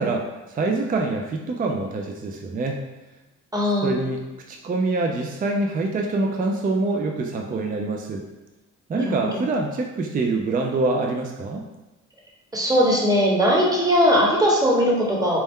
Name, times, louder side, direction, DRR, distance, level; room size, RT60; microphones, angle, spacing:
voice 1, 0.0-2.8 3.8-4.2 4.5-8.2 8.9-11.6, right 3 dB, 30° right, 2 dB, 0.4 m, -25 dB
voice 2, 3.5-4.0 9.0-9.1 12.5-15.4, equal, 10° right, -3 dB, 1.1 m, -19 dB
4.3 x 2.1 x 3.6 m, 1.1 s
cardioid pair, 90°, 30 cm